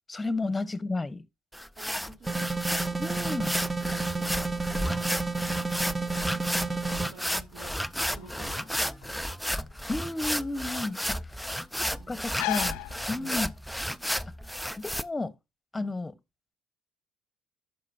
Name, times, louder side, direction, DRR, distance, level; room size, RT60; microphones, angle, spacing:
voice 1, 0.1-1.2 3.0-3.6 9.9-11.3 12.1-12.8 13.1-13.5 14.8-15.3 15.7-16.1, left 2 dB, 20° left, 1.1 m, -32 dB
sound 1, 1.5-15.0, equal, ahead, 0.5 m, -32 dB
voice 2, 1.8-2.6 3.8-5.1 5.8-7.8 8.1-9.1 11.5-11.6 11.9-12.2 13.2-13.4 15.7-15.9, right 3 dB, 60° right, 3.7 m, -50 dB
sound 2, 2.3-7.1, right 3 dB, 15° right, 0.8 m, -31 dB
sound 3, 6.8-13.7, left 21 dB, 75° left, 0.4 m, -40 dB
11.5 x 6.4 x 2.7 m
hypercardioid pair, 60°, 0 cm